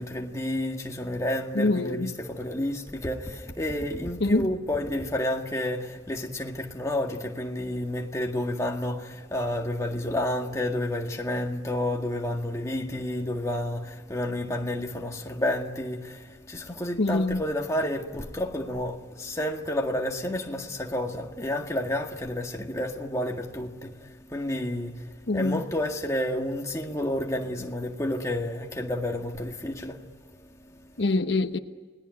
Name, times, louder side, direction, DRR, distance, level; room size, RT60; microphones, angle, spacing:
voice 1, 0.0-30.4 30.6-30.9, left 1 dB, 15° left, 1.9 m, -30 dB
voice 2, 1.5-2.1 4.2-4.5 17.0-17.4 25.3-25.6 31.0-31.6, left 2 dB, 70° left, 1.1 m, -24 dB
29.5 x 19.0 x 9.6 m
head